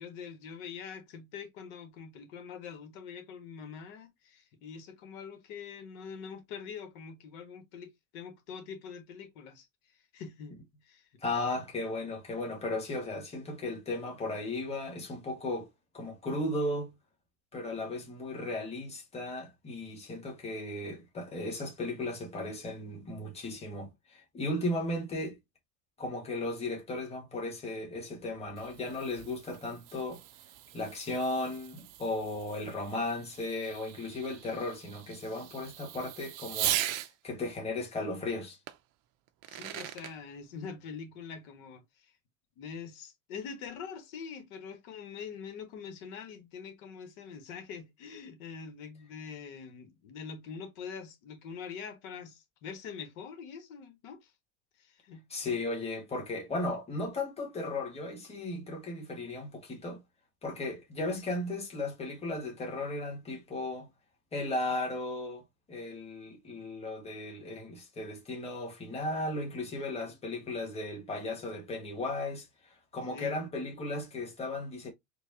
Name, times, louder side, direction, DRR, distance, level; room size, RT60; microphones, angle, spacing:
voice 1, 0.0-9.7 10.1-10.6 10.8-11.1 39.5-42.1 42.6-54.3 54.8-55.2 70.0-70.1 73.1-73.4, left 6 dB, 70° left, 1.5 m, -44 dB
voice 2, 11.2-15.7 15.9-16.9 17.5-25.4 26.0-30.2 30.7-36.8 37.2-38.6 55.3-60.0 60.4-63.9 64.3-65.4 65.7-72.4 72.9-74.9, left 2 dB, 15° left, 1.5 m, -35 dB
Fireworks, 28.3-37.1 38.7-38.8 39.3-40.1, right 14 dB, 45° right, 0.6 m, -39 dB
4.5 x 2.4 x 2.8 m
supercardioid pair, 125°, 43 cm